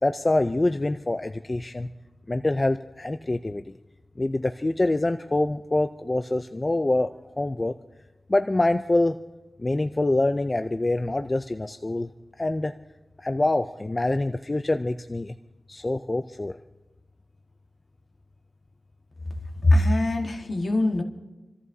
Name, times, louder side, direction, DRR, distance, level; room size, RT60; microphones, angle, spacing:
voice 1, 0.0-1.9 2.3-3.7 4.2-7.1 7.4-7.7 8.3-9.2 9.6-12.1 12.4-12.7 13.2-15.3 15.7-16.6, left 2 dB, 30° left, 8 dB, 0.4 m, -25 dB
voice 2, 19.6-21.0, left 1 dB, 60° left, 3 dB, 1.6 m, -21 dB
28.0 x 14.0 x 2.7 m, 1.1 s
wide cardioid pair, 90°, 0 cm